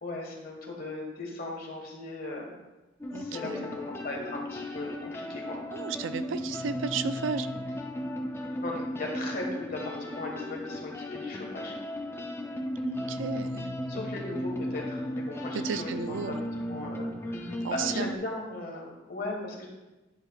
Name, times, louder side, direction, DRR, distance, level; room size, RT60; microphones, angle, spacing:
voice 1, 0.0-2.5 3.2-5.6 8.6-11.7 13.9-16.3 16.7-19.7, left 2 dB, 55° left, -1 dB, 1.6 m, -38 dB
sound 1, 3.0-18.2, left 1 dB, 15° left, 0.6 m, -35 dB
voice 2, 3.1-3.8 5.7-7.5 12.8-13.8 15.5-16.4 17.6-18.1, right 5 dB, 90° right, 11 dB, 0.4 m, -34 dB
10.5 x 6.6 x 2.4 m, 1.1 s
head